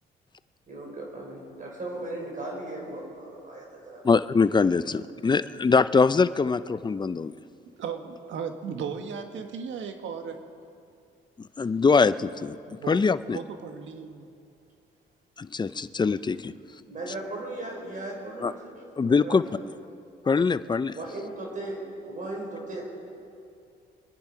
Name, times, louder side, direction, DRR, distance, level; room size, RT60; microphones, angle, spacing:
voice 1, 0.7-4.0 4.8-4.9 5.2-5.3 16.9-18.7 19.0-19.7 20.9-22.8, right 2 dB, 40° right, -1 dB, 4.9 m, -37 dB
voice 2, 4.0-7.3 11.6-13.4 15.4-16.5 18.4-18.5 19.0-19.4 20.3-20.9, left 4 dB, 20° left, 14 dB, 0.5 m, -23 dB
voice 3, 7.8-10.5 12.7-13.0 13.3-14.3, right 6 dB, 75° right, 6 dB, 1.5 m, -36 dB
26.5 x 10.5 x 5.0 m, 2.5 s
cardioid pair, 90°, 20 cm